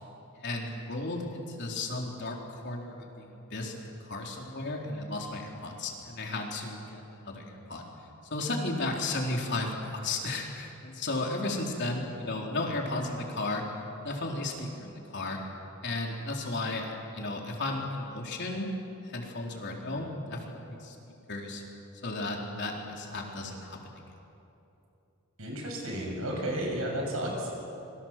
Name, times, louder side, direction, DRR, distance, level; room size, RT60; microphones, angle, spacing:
voice 1, 0.4-7.9 8.3-13.7 14.0-15.4 15.8-18.7 19.0-21.0 21.3-21.6 22.0-24.0, left 2 dB, 55° left, 0 dB, 4.0 m, -34 dB
voice 2, 25.4-27.6, right 1 dB, 75° right, 0 dB, 7.3 m, -32 dB
26.5 x 23.5 x 7.6 m, 2.9 s
head